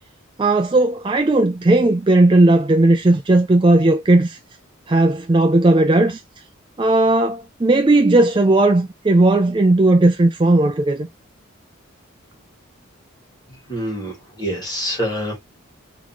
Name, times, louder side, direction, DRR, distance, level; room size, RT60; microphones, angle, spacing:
voice 1, 0.4-4.4 4.9-6.2 6.8-11.1, right 2 dB, 25° right, 0.4 m, -15 dB
voice 2, 13.7-15.4, equal, 20° left, 2.3 m, -26 dB
3.9 x 3.6 x 2.9 m
head